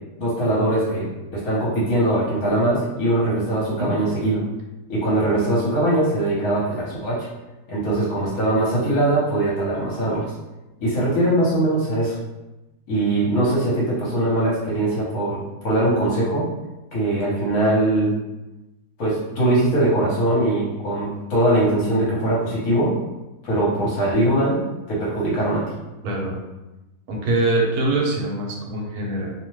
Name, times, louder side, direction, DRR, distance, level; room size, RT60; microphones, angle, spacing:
voice 1, 0.2-4.4 4.9-7.3 7.7-10.2 10.8-12.2 12.9-15.4 15.6-16.5 16.9-18.1 19.0-23.0 23.4-24.6 24.9-25.6, right 1 dB, 70° left, -7 dB, 1.2 m, -21 dB
voice 2, 26.0-26.4 27.1-29.3, right 2 dB, 75° right, -1 dB, 1.1 m, -23 dB
2.8 x 2.1 x 3.0 m, 1.0 s
omnidirectional pair, 1.7 m